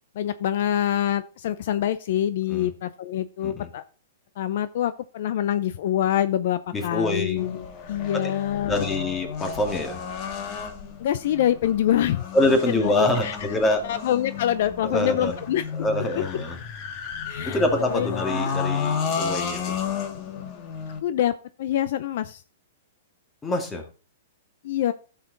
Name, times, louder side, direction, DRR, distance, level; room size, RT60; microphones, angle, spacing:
voice 1, 0.2-3.8 4.4-8.9 11.0-12.2 12.7-13.4 13.8-15.6 17.3-17.6 17.9-18.2 21.0-21.3 21.6-22.4 24.6-24.9, left 11 dB, 60° left, 14 dB, 0.6 m, -25 dB
voice 2, 6.7-7.4 8.1-8.3 8.6-10.0 12.3-13.8 14.8-15.3 15.7-16.6 17.5-19.7 23.4-23.8, left 1 dB, 15° left, 4 dB, 2.1 m, -25 dB
sound 1, 7.4-21.0, left 6 dB, 40° left, 1.7 m, -32 dB
12.0 x 6.6 x 3.9 m, 0.37 s
hypercardioid pair, 145°, 0 cm